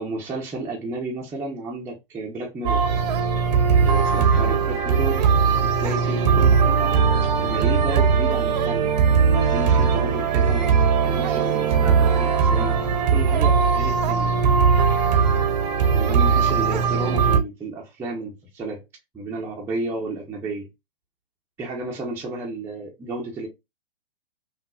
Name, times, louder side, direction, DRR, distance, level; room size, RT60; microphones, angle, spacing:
voice 1, 0.0-2.8 3.7-5.3 5.8-7.0 7.4-9.0 9.5-14.3 15.9-18.8 19.1-20.7 21.6-23.5, right 2 dB, 5° right, 1.0 m, -32 dB
sound 1, 2.6-17.4, right 6 dB, 45° right, 1.1 m, -19 dB
5.9 x 2.7 x 2.5 m
figure-of-eight pair, 130°, 30 cm